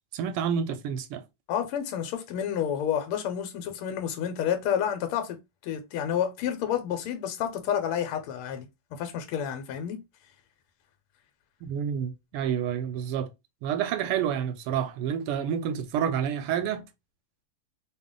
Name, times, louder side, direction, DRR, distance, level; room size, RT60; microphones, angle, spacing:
voice 1, 0.1-1.2 11.6-13.3 13.6-16.9, right 8 dB, 85° right, 1.5 m, -29 dB
voice 2, 1.5-8.7 8.9-10.0, left 9 dB, 85° left, 1.5 m, -30 dB
3.6 x 2.2 x 3.6 m
omnidirectional pair, 2.4 m